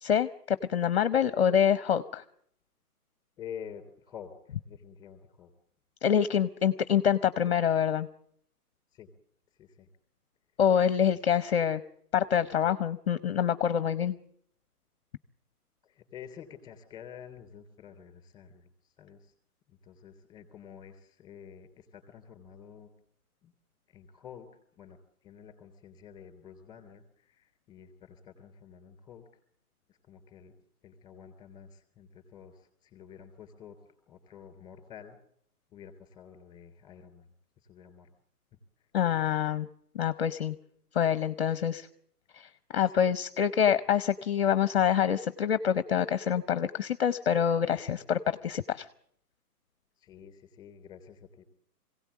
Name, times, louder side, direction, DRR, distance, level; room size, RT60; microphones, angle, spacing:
voice 1, 0.0-2.2 6.0-8.1 10.6-11.8 12.1-14.2 38.9-39.7 39.9-40.5 40.9-41.9 42.3-48.9, left 8 dB, 40° left, 13 dB, 0.8 m, -26 dB
voice 2, 3.4-4.3 4.6-5.5 8.9-9.1 9.6-9.9 15.8-18.7 19.0-19.3 19.7-22.9 23.4-23.5 23.9-24.5 24.8-25.0 25.2-29.3 29.9-30.5 30.8-33.8 34.1-35.2 35.7-37.3 37.6-38.1 38.5-38.6 42.9-43.1 50.0-51.5, left 8 dB, 10° left, 7 dB, 3.2 m, -49 dB
22.0 x 17.5 x 8.3 m, 0.68 s
hypercardioid pair, 155°, 47 cm